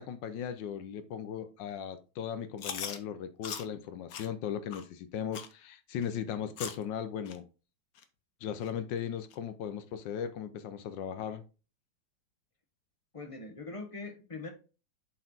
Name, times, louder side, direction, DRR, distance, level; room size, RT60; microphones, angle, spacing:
voice 1, 0.0-7.4 8.4-11.4, left 8 dB, 80° left, 10 dB, 1.4 m, -37 dB
Chewing mastication, 2.6-3.0 3.4-3.6 4.1-4.3 4.7-4.8 5.3-5.5 6.0-6.1 6.6-6.8 7.3-7.4 8.0-8.1 8.6-8.7 9.3-9.4, left 8 dB, 60° left, 1.2 m, -39 dB
voice 2, 13.1-14.5, left 3 dB, 20° left, 4 dB, 1.0 m, -42 dB
7.7 x 4.3 x 3.9 m, 0.33 s
omnidirectional pair, 2.0 m